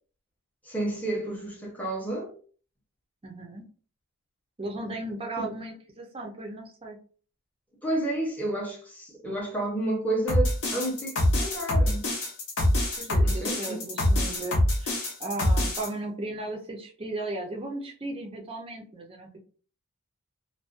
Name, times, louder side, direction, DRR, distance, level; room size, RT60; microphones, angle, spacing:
voice 1, 0.6-2.3 5.4-5.5 7.8-12.1 13.2-13.8, right 1 dB, 5° left, 0.7 m, -31 dB
voice 2, 3.2-3.6 4.6-7.0 13.0-19.4, right 2 dB, 25° right, 0.5 m, -36 dB
sound 1, 10.3-15.9, left 1 dB, 60° left, 0.8 m, -24 dB
2.4 x 2.2 x 2.4 m
head